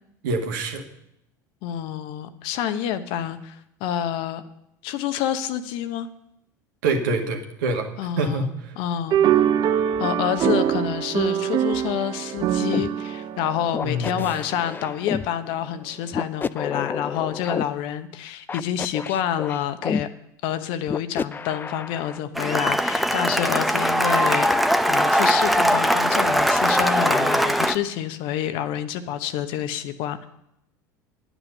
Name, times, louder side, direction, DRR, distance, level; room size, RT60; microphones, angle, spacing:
voice 1, 0.2-0.9 6.8-8.8 13.8-14.2, right 2 dB, 70° right, 4 dB, 1.8 m, -26 dB
voice 2, 1.6-4.4 4.8-6.1 8.0-8.5 8.8-9.2 10.0-20.1 20.4-24.5 24.9-30.3, left 10 dB, 60° left, 10 dB, 0.9 m, -28 dB
sound 1, 9.1-14.7, right 10 dB, 45° right, 0.7 m, -24 dB
sound 2, 12.7-12.9 13.7-15.3 16.1-17.6 18.5-20.0 20.9-22.2, left 5 dB, 20° left, 0.4 m, -30 dB
Cheering / Applause, 22.4-27.8, equal, ahead, 0.7 m, -20 dB
9.9 x 9.2 x 6.6 m, 0.79 s
hypercardioid pair, 75°, 10 cm